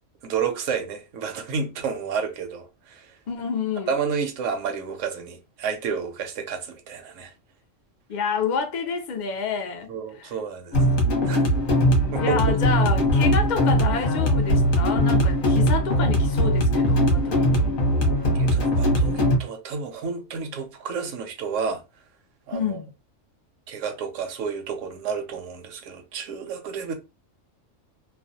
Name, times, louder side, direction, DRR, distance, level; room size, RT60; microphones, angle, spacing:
voice 1, 0.2-3.2 3.9-7.3 9.9-10.9 11.2-11.5 12.1-12.6 18.3-21.8 22.5-22.8 23.7-26.9, right 6 dB, 75° right, 0.9 m, -30 dB
voice 2, 3.3-3.9 8.1-9.9 10.2-10.3 12.2-17.8 22.5-22.9, left 6 dB, 75° left, 0.4 m, -28 dB
sound 1, 10.7-19.4, equal, 50° left, 0.9 m, -20 dB
2.4 x 2.1 x 2.6 m
omnidirectional pair, 1.3 m